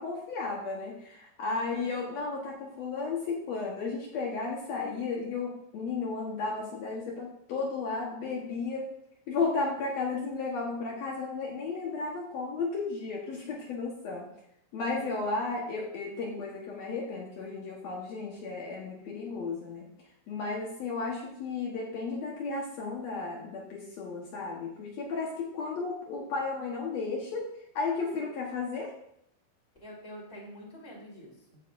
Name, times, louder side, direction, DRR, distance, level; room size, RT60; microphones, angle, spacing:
voice 1, 0.0-8.9 9.3-14.3 14.7-19.9 20.3-27.5 27.7-28.9, left 4 dB, 80° left, -2 dB, 1.5 m, -34 dB
voice 2, 1.4-2.0 14.8-15.5 29.8-31.6, equal, 15° left, -4 dB, 2.9 m, -46 dB
15.0 x 6.6 x 2.6 m, 0.75 s
omnidirectional pair, 5.1 m